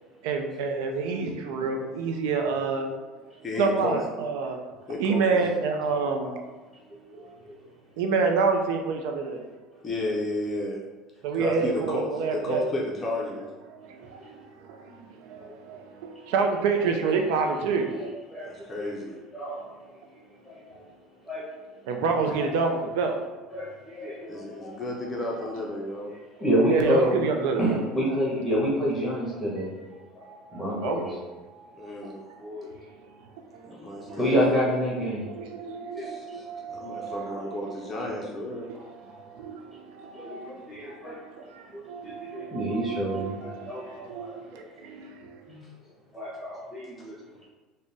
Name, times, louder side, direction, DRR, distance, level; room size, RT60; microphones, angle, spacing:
voice 1, 0.2-2.9 3.6-4.6 5.0-6.4 7.2-7.4 8.0-9.4 11.2-12.6 13.7-17.9 21.9-23.2 24.7-24.8 26.7-27.8 30.3-31.0 31.5-32.6 33.5-34.2 35.2-37.7 38.1-38.2 38.9-41.0 41.3-45.5, right 4 dB, 80° right, 4 dB, 0.4 m, -29 dB
voice 2, 1.0-1.4 5.3-5.4 5.8-6.4 7.1-7.5 9.2-9.3 9.8-9.9 14.2-14.3 14.9-15.0 15.4-15.8 16.7-16.9 17.2-17.3 17.9-19.6 20.4-20.9 21.2-21.5 22.3-22.7 23.5-24.8 26.1-27.2 27.6-29.7 30.1-31.2 32.4-32.9 34.1-35.3 35.6-36.1 37.9-38.1 38.7-39.2 40.1-41.2 41.7-44.7 45.5-45.6 46.1-47.2, equal, ahead, -6 dB, 1.4 m, -30 dB
voice 3, 3.4-4.0 4.9-5.6 9.8-10.8 11.4-13.5 18.5-19.2 24.3-26.1 31.7-32.2 33.7-34.4 36.0-38.7 42.2-42.3, left 2 dB, 25° left, -2 dB, 0.5 m, -32 dB
3.8 x 2.1 x 3.5 m, 1.3 s
cardioid pair, 130°, 0 cm